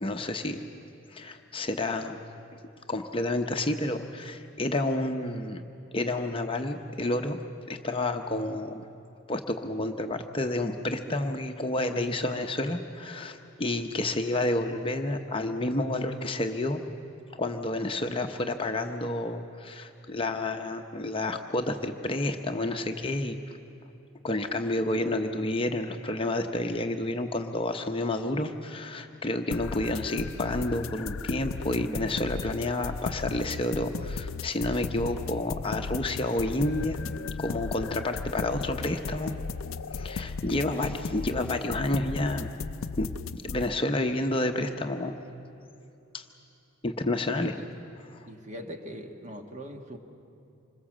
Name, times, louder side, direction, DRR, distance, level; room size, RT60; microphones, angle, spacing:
voice 1, 0.0-0.6 1.1-2.2 2.9-5.6 5.9-7.4 7.7-8.8 9.3-16.8 17.3-23.4 24.2-37.0 37.4-39.3 39.9-42.5 43.0-43.1 43.3-45.1 46.1-46.2 46.8-47.5 48.1-48.3, left 2 dB, 25° left, 5 dB, 0.8 m, -30 dB
sound 1, 29.5-43.6, left 4 dB, 65° left, 0.5 m, -36 dB
voice 2, 47.3-47.6 48.3-50.0, equal, 35° right, 4 dB, 1.6 m, -41 dB
26.0 x 21.5 x 7.4 m, 2.7 s
head